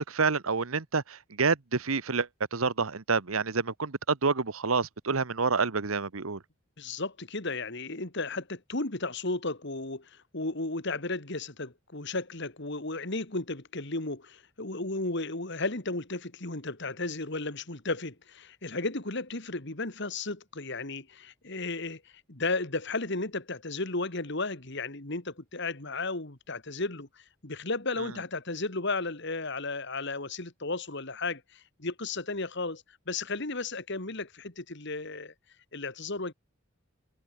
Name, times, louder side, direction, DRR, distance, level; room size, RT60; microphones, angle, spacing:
voice 1, 0.0-6.4, right 4 dB, 80° right, 1.2 m, -28 dB
voice 2, 6.8-22.0 22.3-27.1 27.4-35.3 35.7-36.3, left 3 dB, 55° left, 2.5 m, -34 dB
head